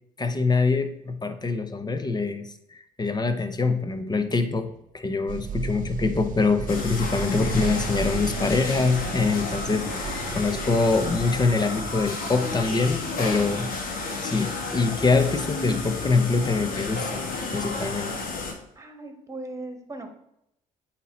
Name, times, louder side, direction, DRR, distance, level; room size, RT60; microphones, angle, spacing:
voice 1, 0.2-13.7 14.2-18.1, left 4 dB, 25° left, 9 dB, 0.7 m, -24 dB
sound 1, 5.3-11.2, right 7 dB, 50° right, 0.5 m, -35 dB
sound 2, 6.7-18.5, left 3 dB, 55° left, 1.4 m, -32 dB
voice 2, 18.7-20.2, right 2 dB, 20° right, 6 dB, 1.3 m, -38 dB
8.2 x 2.8 x 4.2 m, 0.80 s
supercardioid pair, 65°, 17 cm